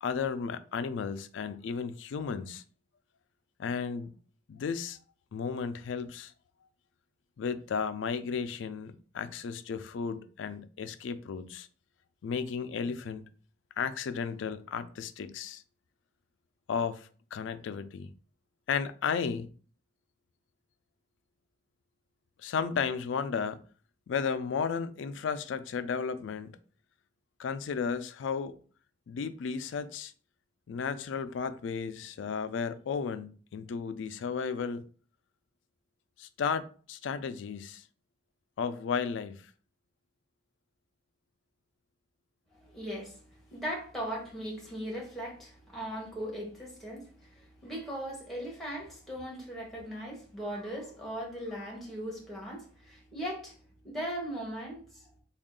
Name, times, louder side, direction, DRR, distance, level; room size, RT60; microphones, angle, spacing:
voice 1, 0.0-2.6 3.6-4.1 4.5-5.0 5.3-6.3 7.4-11.7 12.2-13.2 13.8-15.6 16.7-18.1 18.7-19.5 22.4-23.7 24.1-26.6 27.4-28.6 29.1-30.1 30.7-34.8 36.2-37.8 38.6-39.3, left 6 dB, 80° left, 0.3 m, -34 dB
voice 2, 42.5-53.6 53.8-55.1, equal, ahead, 1.2 m, -39 dB
3.6 x 2.3 x 3.7 m
head